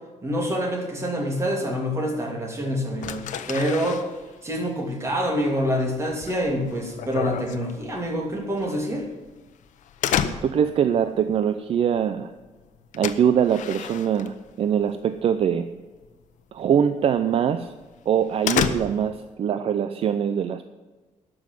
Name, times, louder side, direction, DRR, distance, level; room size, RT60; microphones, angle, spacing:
voice 1, 0.2-4.0 4.4-9.0, equal, 20° right, 0 dB, 2.9 m, -26 dB
sound 1, 3.0-14.9 15.2-15.7 16.0-16.2 16.6-16.7 17.2-17.3 17.6-19.3, left 9 dB, 85° left, 0.9 m, -31 dB
voice 2, 10.4-12.3 12.9-15.6 16.5-17.7 18.1-20.7, right 8 dB, 50° right, 10 dB, 0.6 m, -23 dB
12.0 x 6.3 x 9.1 m, 1.3 s
cardioid pair, 155°, 12 cm